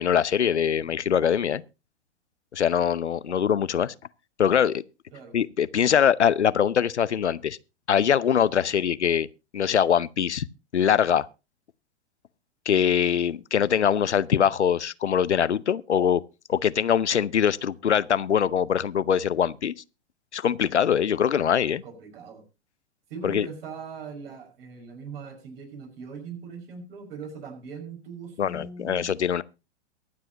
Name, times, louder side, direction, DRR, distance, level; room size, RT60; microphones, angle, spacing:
voice 1, 0.0-1.6 2.5-3.9 4.4-4.8 5.3-7.6 7.9-9.3 9.5-10.5 10.7-11.3 12.7-16.2 16.5-19.7 20.3-21.8 23.2-23.5 28.4-29.4, left 8 dB, 80° left, 0.6 m, -23 dB
voice 2, 0.8-1.2 3.3-3.4 5.1-5.3 21.8-22.4 23.1-29.1, right 5 dB, 60° right, 5.7 m, -41 dB
22.5 x 7.7 x 2.9 m
figure-of-eight pair, 105°, 34 cm